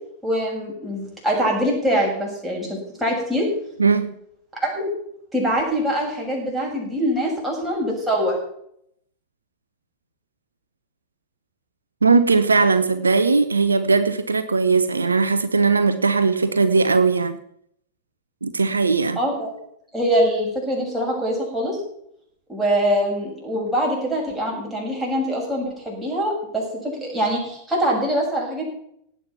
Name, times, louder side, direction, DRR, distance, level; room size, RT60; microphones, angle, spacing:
voice 1, 0.2-3.5 4.6-4.9 5.3-8.4 19.2-19.5 19.9-21.8 22.5-28.6, equal, 5° right, -3 dB, 7.1 m, -23 dB
voice 2, 3.8-4.1 12.0-17.4 18.4-19.2, right 4 dB, 75° right, 12 dB, 0.8 m, -19 dB
18.0 x 8.5 x 5.9 m, 0.71 s
figure-of-eight pair, 90°, 0 cm